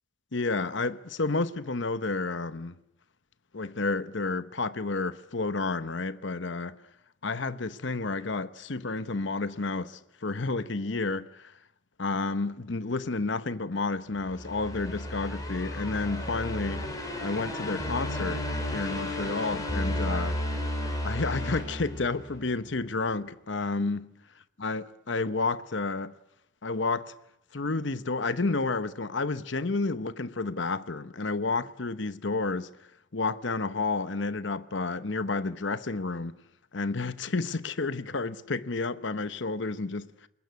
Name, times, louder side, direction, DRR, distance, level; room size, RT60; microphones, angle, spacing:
voice 1, 0.3-2.8 3.5-6.8 7.2-11.5 12.0-16.9 17.2-18.4 18.7-20.4 21.0-24.0 24.6-26.1 26.6-27.1 27.5-32.7 33.1-36.4 36.7-40.1, left 3 dB, 60° left, 0.9 m, -30 dB
sound 1, 14.2-22.5, left 1 dB, 15° left, 5.8 m, -33 dB
25.5 x 21.0 x 9.4 m
head